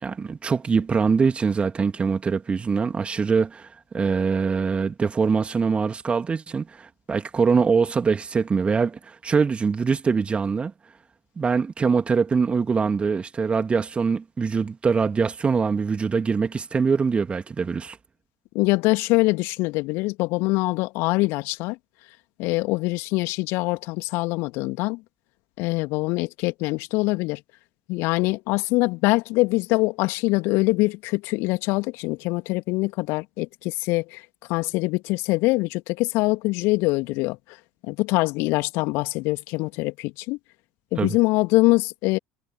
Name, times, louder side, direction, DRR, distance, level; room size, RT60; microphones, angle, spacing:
voice 1, 0.0-10.7 11.4-18.0 41.0-41.2, right 5 dB, 25° right, 2.9 m, -23 dB
voice 2, 18.5-21.8 22.4-25.0 25.6-27.4 27.9-34.2 34.5-37.4 37.9-40.4 40.9-42.2, left 23 dB, 55° left, 2.8 m, -23 dB
figure-of-eight pair, 65°, 5 cm